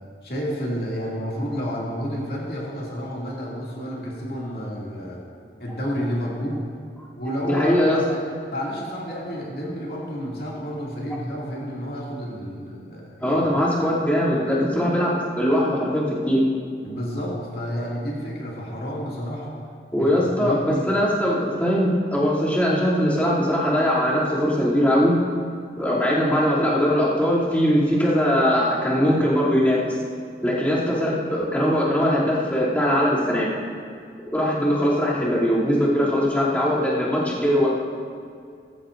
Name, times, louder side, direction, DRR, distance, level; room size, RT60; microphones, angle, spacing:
voice 1, 0.2-5.2 5.6-6.6 7.2-8.2 8.5-13.4 16.8-19.6 20.0-20.8, equal, 55° left, -5 dB, 2.5 m, -30 dB
voice 2, 7.5-8.0 13.2-16.4 19.9-25.2 25.8-30.0 30.4-33.5 34.3-37.7, equal, 10° left, -9 dB, 2.8 m, -21 dB
17.5 x 14.5 x 2.6 m, 2.2 s
head